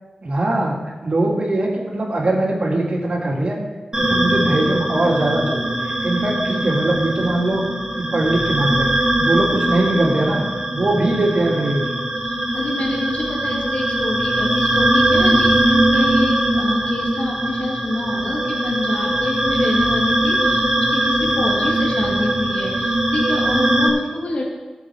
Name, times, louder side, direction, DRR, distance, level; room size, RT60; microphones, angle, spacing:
voice 1, 0.2-3.6 4.0-7.6 7.9-8.9 9.2-10.4 10.7-11.9, right 2 dB, 55° right, -2 dB, 3.0 m, -21 dB
sound 1, 3.9-23.9, right 1 dB, 25° right, 3.7 m, -20 dB
voice 2, 12.2-24.4, left 2 dB, 75° left, -2 dB, 2.7 m, -27 dB
18.0 x 7.3 x 5.0 m, 1.3 s
wide cardioid pair, 95°, 2 cm